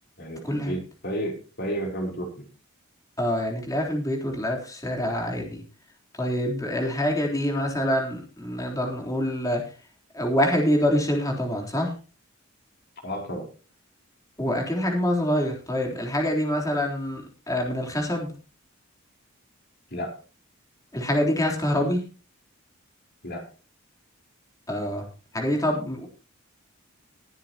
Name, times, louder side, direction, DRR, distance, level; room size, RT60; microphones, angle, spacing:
voice 1, 0.2-2.4 13.0-13.5 19.9-20.1 23.2-23.4, equal, 50° left, 2 dB, 4.2 m, -32 dB
voice 2, 3.2-5.6 6.2-9.6 10.1-11.9 14.4-18.3 20.9-22.1 24.7-25.1 25.3-26.1, equal, 15° left, 1 dB, 3.7 m, -25 dB
20.0 x 10.0 x 2.9 m, 0.35 s
head